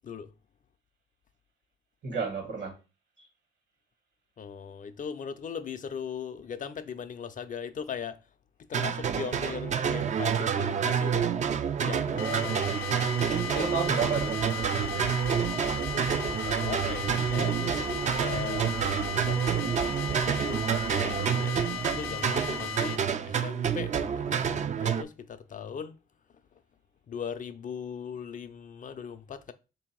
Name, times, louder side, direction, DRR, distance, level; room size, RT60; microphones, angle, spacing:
voice 1, 2.0-2.7 3.2-3.3 9.8-9.9 12.1-12.6 13.5-15.2, right 5 dB, 65° right, 1.5 m, -33 dB
voice 2, 4.4-8.2 8.7-11.3 11.8-12.7 16.1-19.6 20.3-21.6 21.9-26.0 27.1-29.5, left 7 dB, 40° left, 0.5 m, -39 dB
sound 1, 8.7-25.0, right 7 dB, 35° right, 0.4 m, -28 dB
sound 2, 12.2-23.0, left 6 dB, 90° left, 0.6 m, -36 dB
sound 3, 14.2-21.2, right 1 dB, 80° right, 1.2 m, -44 dB
3.4 x 2.7 x 4.5 m
cardioid pair, 90°, 20 cm